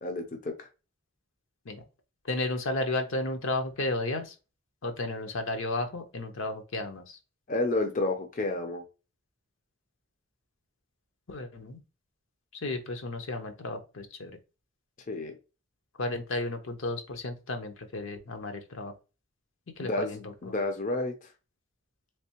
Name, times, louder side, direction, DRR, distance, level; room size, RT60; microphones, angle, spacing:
voice 1, 0.0-0.7 7.5-8.8 15.1-15.4 19.8-21.3, left 2 dB, 40° left, 5 dB, 0.4 m, -31 dB
voice 2, 2.2-4.3 4.8-7.2 11.3-11.8 12.5-14.3 16.0-18.9 19.8-20.3, left 2 dB, 75° left, 6 dB, 0.7 m, -33 dB
3.3 x 3.1 x 2.9 m, 0.31 s
head